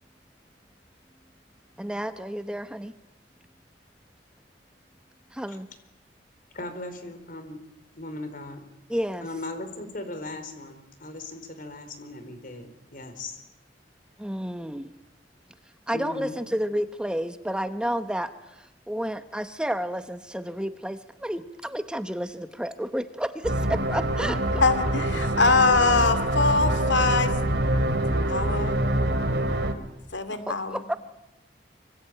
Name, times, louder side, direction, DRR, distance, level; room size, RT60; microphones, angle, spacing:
voice 1, 1.8-2.9 5.3-5.7 8.9-9.3 14.2-14.9 15.9-18.3 18.9-24.4 30.5-31.0, equal, 5° right, 10 dB, 1.0 m, -30 dB
voice 2, 6.5-7.6 8.0-8.6 9.2-13.4 15.9-16.3, left 2 dB, 50° left, 9 dB, 4.3 m, -38 dB
sound 1, 23.4-29.7, right 1 dB, 70° right, 2.6 m, -25 dB
voice 3, 24.6-27.4 28.3-28.8 30.1-31.0, left 3 dB, 85° left, 10 dB, 2.4 m, -23 dB
25.0 x 25.0 x 8.9 m, 0.95 s
head